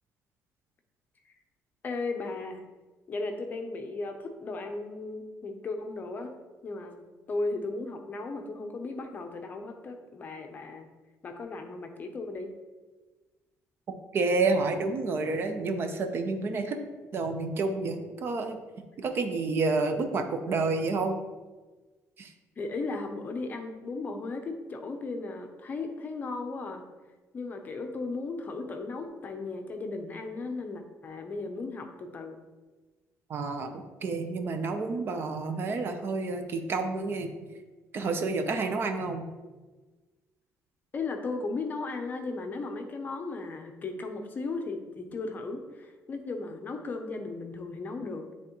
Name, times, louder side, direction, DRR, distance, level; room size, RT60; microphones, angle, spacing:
voice 1, 1.8-2.6 3.1-6.3 6.6-7.0 7.3-10.9 11.2-12.5 22.6-26.8 27.3-32.4 40.9-48.2, left 3 dB, 30° left, 5 dB, 0.7 m, -36 dB
voice 2, 14.1-16.8 17.1-18.6 19.0-21.2 22.2-22.3 33.3-33.7 34.0-37.3 37.9-39.2, right 3 dB, 40° right, 6 dB, 0.6 m, -29 dB
10.0 x 3.5 x 3.0 m, 1.3 s
cardioid pair, 150°, 6 cm